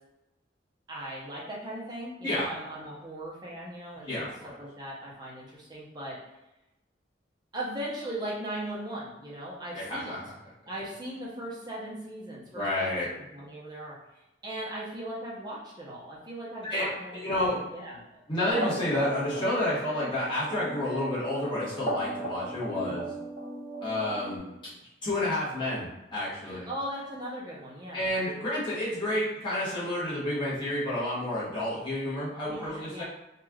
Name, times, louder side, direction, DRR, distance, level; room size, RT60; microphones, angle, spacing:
voice 1, 0.9-4.3 4.6-6.2 7.5-10.2 10.7-14.0 14.4-18.2 22.7-23.0 26.4-28.1 32.5-33.0, right 1 dB, 25° right, -5 dB, 0.7 m, -38 dB
voice 2, 4.0-4.5 9.7-10.3 12.5-13.1 16.7-17.6 18.3-23.1 23.8-24.6 25.0-26.7 27.9-33.0, left 1 dB, 25° left, -11 dB, 1.1 m, -30 dB
sound 1, 18.5-24.4, right 1 dB, 50° left, 1.2 m, -36 dB
3.2 x 2.4 x 2.3 m, 0.95 s
head